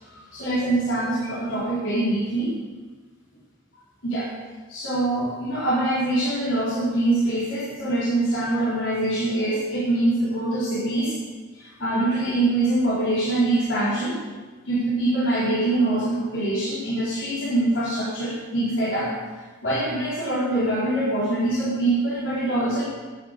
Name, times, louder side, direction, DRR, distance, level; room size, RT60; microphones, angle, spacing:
voice 1, 0.1-2.6 4.0-4.3 4.7-11.2 11.6-14.2 14.7-19.1 19.6-22.8, right 1 dB, 85° left, -9 dB, 4.1 m, -24 dB
11.5 x 10.0 x 6.6 m, 1.3 s
head